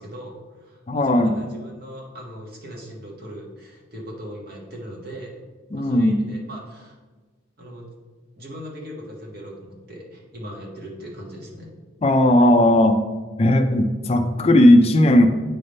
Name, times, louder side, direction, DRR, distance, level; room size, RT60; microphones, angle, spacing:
voice 1, 0.0-5.4 5.7-7.0 7.6-7.9 8.4-11.7, equal, 50° right, -2 dB, 1.5 m, -39 dB
voice 2, 0.9-1.3 5.7-6.2 12.0-13.0 13.4-15.3, left 1 dB, 30° left, 7 dB, 0.4 m, -16 dB
8.6 x 3.4 x 5.3 m, 1.3 s
head